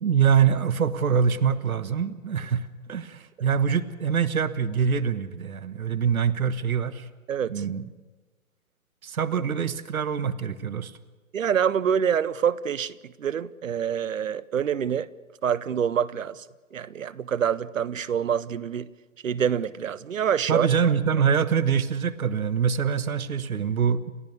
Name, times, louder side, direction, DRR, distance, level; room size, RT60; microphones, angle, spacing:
voice 1, 0.0-7.1 7.5-7.8 9.0-10.9 20.5-24.1, right 7 dB, 80° right, 1.3 m, -24 dB
voice 2, 7.3-7.6 11.3-15.1 15.4-16.4 16.7-18.9 19.2-20.7, right 8 dB, 65° right, 0.8 m, -26 dB
29.5 x 14.0 x 6.8 m
hypercardioid pair, 170°, 42 cm